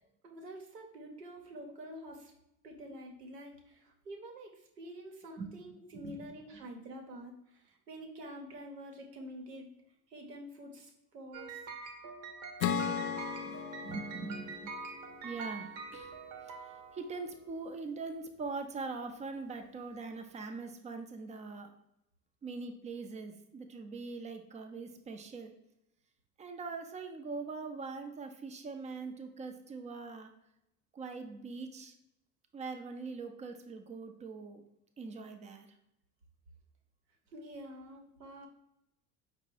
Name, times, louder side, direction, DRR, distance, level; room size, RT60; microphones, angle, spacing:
voice 1, 0.2-2.3 2.6-9.7 10.1-11.6 37.3-38.5, equal, 90° right, 2 dB, 0.8 m, -47 dB
sound 1, 11.3-17.3, right 5 dB, 60° right, 0.9 m, -45 dB
Acoustic guitar / Strum, 12.6-16.1, left 8 dB, 55° left, 0.5 m, -37 dB
voice 2, 13.4-14.8 15.2-16.2 16.9-21.7 22.4-25.5 26.4-30.3 30.9-31.9 32.5-34.6 35.0-35.7, right 4 dB, 15° right, 6 dB, 0.3 m, -42 dB
5.1 x 2.1 x 4.3 m, 0.84 s
figure-of-eight pair, 65°, 46 cm